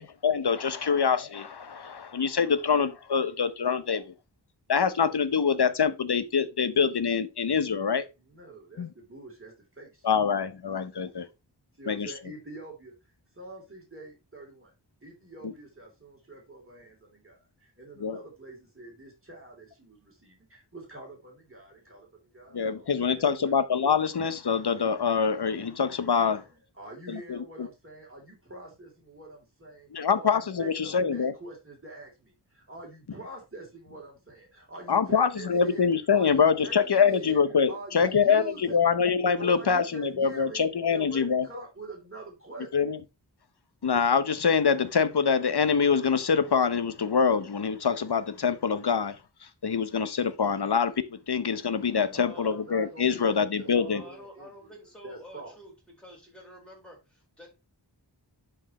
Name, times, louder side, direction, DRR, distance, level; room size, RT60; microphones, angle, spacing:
voice 1, 0.0-4.1 4.7-8.1 8.8-8.9 10.0-11.3 11.9-12.1 15.4-15.5 18.0-18.2 22.5-26.4 27.1-27.7 29.9-31.3 34.9-41.5 42.7-43.0 43.8-49.2 49.6-54.0, left 6 dB, 60° left, 0.8 m, -25 dB
voice 2, 8.2-10.1 11.7-12.9 13.3-14.7 15.0-23.5 26.2-37.4 37.7-38.9 39.4-42.8 52.3-54.8 55.0-55.5, right 2 dB, 30° right, 3.1 m, -45 dB
voice 3, 52.1-52.6 53.7-55.7 56.0-57.5, equal, ahead, 4.4 m, -48 dB
11.0 x 4.6 x 3.0 m
wide cardioid pair, 55°, 44 cm